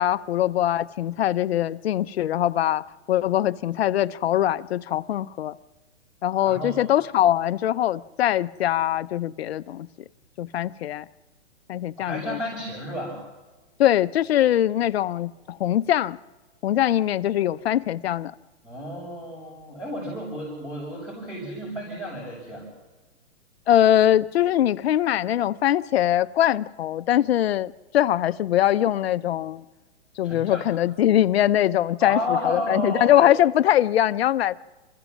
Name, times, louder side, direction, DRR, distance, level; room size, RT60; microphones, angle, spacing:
voice 1, 0.0-5.5 6.2-9.9 10.4-11.0 11.7-12.4 13.8-16.2 16.6-18.3 23.7-29.6 30.2-34.5, left 12 dB, 60° left, 0.7 m, -22 dB
voice 2, 6.4-6.8 12.0-13.2 18.6-22.7 30.2-30.6 32.0-33.3, left 1 dB, 10° right, 6.1 m, -31 dB
27.0 x 14.5 x 7.3 m
hypercardioid pair, 160°, 36 cm